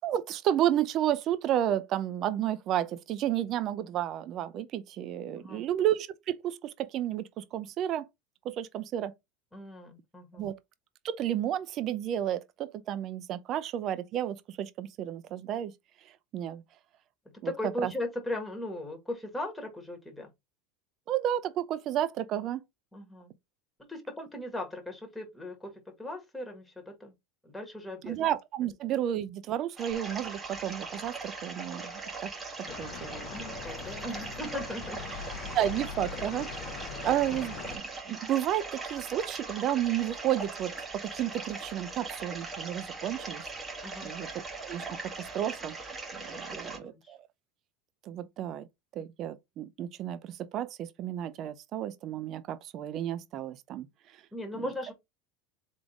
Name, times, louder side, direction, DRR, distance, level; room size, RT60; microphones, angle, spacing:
voice 1, 0.0-8.1 8.4-9.1 10.4-10.6 11.0-15.7 16.3-16.6 17.4-17.5 17.8-17.9 21.1-22.6 28.0-32.3 32.8-33.3 35.5-36.5 37.0-43.5 44.0-44.3 44.6-44.8 45.2-45.8 46.1-47.2 48.0-48.7 48.9-53.9 54.5-54.6, right 11 dB, 45° right, 0.6 m, -32 dB
voice 2, 5.4-5.7 9.5-10.5 17.4-20.3 22.9-23.3 23.8-25.7 26.0-27.1 27.4-28.2 33.3-35.6 36.8-37.0 43.8-44.1 46.6-47.1 54.3-54.9, left 1 dB, 5° left, 1.7 m, -38 dB
sound 1, 29.8-46.8, right 3 dB, 20° right, 1.6 m, -40 dB
sound 2, 32.7-37.8, left 8 dB, 50° left, 0.7 m, -42 dB
3.8 x 3.5 x 3.6 m
supercardioid pair, 115°, 0 cm